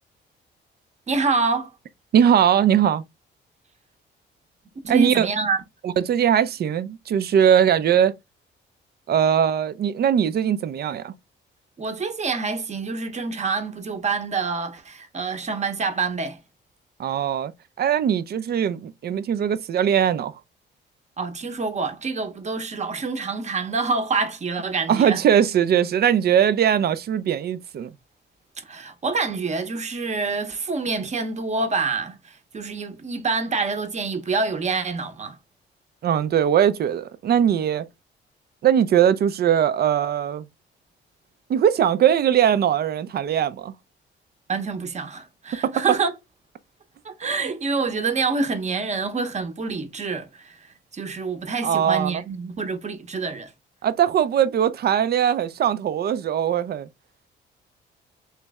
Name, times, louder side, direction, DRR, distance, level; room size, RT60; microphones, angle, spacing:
voice 1, 1.1-1.7 4.8-5.6 11.8-16.4 21.2-25.2 28.6-35.4 44.5-46.1 47.0-53.5, right 4 dB, 35° right, 0.9 m, -27 dB
voice 2, 2.1-3.0 4.9-5.3 5.8-8.1 9.1-11.1 17.0-17.5 17.8-20.3 24.9-27.9 36.0-37.9 38.6-40.4 41.5-43.7 45.6-45.8 51.6-52.2 53.8-56.9, right 9 dB, 55° right, 0.5 m, -20 dB
3.2 x 3.1 x 3.5 m
cardioid pair, 90°, 20 cm